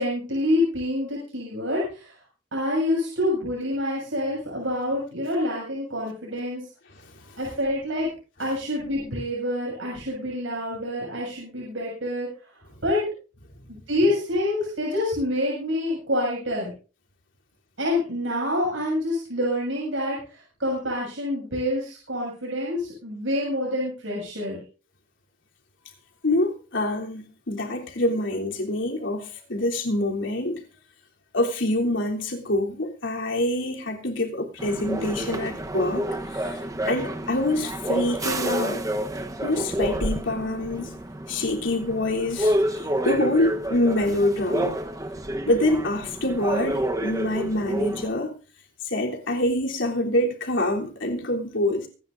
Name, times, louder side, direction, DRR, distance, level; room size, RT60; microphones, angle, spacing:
voice 1, 0.0-2.1 2.5-6.6 7.4-8.1 8.4-12.3 12.8-13.0 13.7-16.7 17.8-24.6, left 1 dB, 90° right, 6.8 m, -27 dB
voice 2, 26.2-30.6 31.3-36.0 36.3-36.6 36.9-38.9 39.4-40.9 41.3-44.8 45.5-48.3 48.8-51.9, left 1 dB, 75° left, 3.4 m, -26 dB
sound 1, 34.6-48.1, right 1 dB, 20° right, 1.0 m, -29 dB
24.5 x 10.5 x 2.6 m
head